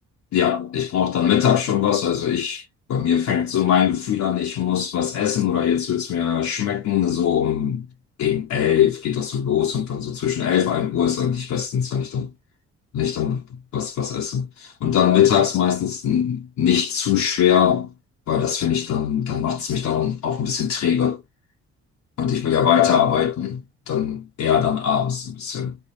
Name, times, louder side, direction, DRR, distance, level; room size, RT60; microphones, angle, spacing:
voice 1, 0.3-2.6 2.9-7.9 8.2-12.3 12.9-13.4 13.7-17.9 18.3-21.2 22.2-25.8, left 9 dB, 65° left, 0.9 m, -21 dB
3.6 x 3.2 x 2.7 m
cardioid pair, 90°, 30 cm